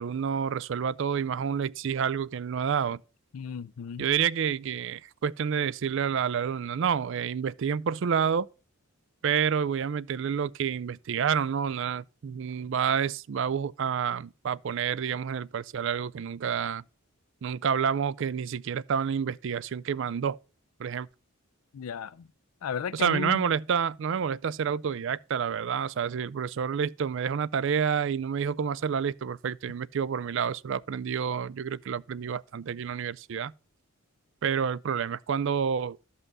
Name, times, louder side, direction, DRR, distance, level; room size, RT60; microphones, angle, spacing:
voice 1, 0.0-3.0 4.0-8.5 9.2-16.8 17.4-20.4 20.8-21.1 22.9-33.5 34.4-36.0, right 7 dB, 60° right, 0.3 m, -29 dB
voice 2, 3.3-4.1 21.7-22.3 22.6-23.4, left 6 dB, 85° left, 0.4 m, -34 dB
13.5 x 5.6 x 4.0 m
head